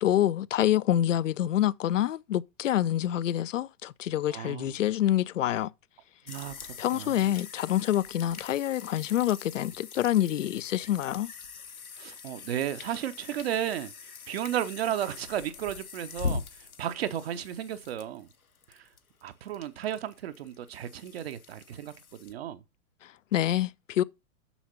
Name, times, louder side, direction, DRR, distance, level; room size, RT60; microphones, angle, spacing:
voice 1, 0.0-5.7 6.8-11.3 23.0-24.0, left 12 dB, 60° left, 0.5 m, -27 dB
voice 2, 4.3-4.7 6.3-6.6 6.9-7.3 12.0-18.3 18.7-18.9 19.2-21.9 22.2-22.6, right 10 dB, 45° right, 0.8 m, -34 dB
sound 1, 6.3-22.3, left 5 dB, 75° left, 1.1 m, -42 dB
7.1 x 6.4 x 5.6 m
figure-of-eight pair, 105°, 43 cm